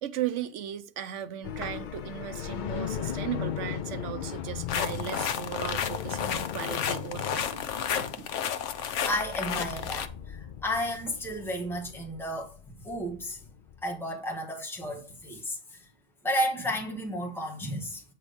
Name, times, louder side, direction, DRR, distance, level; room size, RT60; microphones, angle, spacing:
voice 1, 0.0-7.6 8.2-8.3, right 10 dB, 80° right, 1.0 m, -36 dB
sound 1, 1.4-13.9, left 9 dB, 60° left, 0.5 m, -38 dB
sound 2, 1.6-1.9 2.5-2.6 3.4-3.6 5.1-5.9 7.9-8.3 8.8-8.9 10.5-11.2, equal, 15° right, 3.3 m, -45 dB
sound 3, 4.7-10.1, left 8 dB, 80° left, 1.1 m, -32 dB
voice 2, 9.0-13.5 13.8-15.9 16.2-18.0, equal, ahead, 1.6 m, -33 dB
8.7 x 4.4 x 5.1 m
omnidirectional pair, 1.2 m